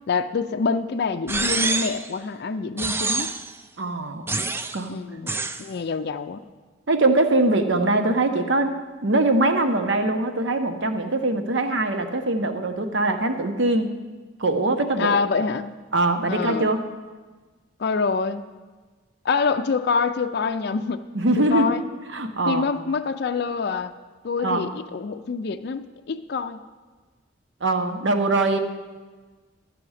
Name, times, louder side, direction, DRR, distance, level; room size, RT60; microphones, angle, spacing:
voice 1, 0.1-3.3 4.9-5.3 5.6-6.4 15.0-15.8 16.3-16.7 17.8-18.4 19.2-21.0 21.4-21.8 22.5-23.9 24.2-26.6, left 5 dB, 55° left, 8 dB, 0.4 m, -26 dB
sound 1, 1.3-2.1 2.8-3.5 4.3-4.8 5.3-5.6, right 3 dB, 10° right, 0.3 m, -26 dB
voice 2, 3.8-4.3 4.7-5.0 6.9-8.7 9.0-13.9 14.4-15.2 15.9-16.8 21.1-21.7 22.1-22.7 24.4-24.7 27.6-28.6, right 2 dB, 70° right, 7 dB, 0.9 m, -22 dB
13.0 x 7.7 x 4.9 m, 1.3 s
head